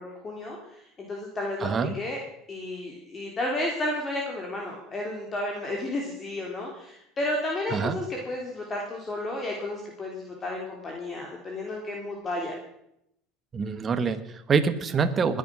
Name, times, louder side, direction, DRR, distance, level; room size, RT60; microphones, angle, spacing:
voice 1, 0.0-2.2 2.5-12.5, left 1 dB, 25° left, 0 dB, 3.4 m, -32 dB
voice 2, 1.6-2.0 7.7-8.0 13.5-15.4, right 5 dB, 30° right, 10 dB, 1.5 m, -25 dB
21.0 x 10.0 x 6.3 m, 0.80 s
supercardioid pair, 125°, 0 cm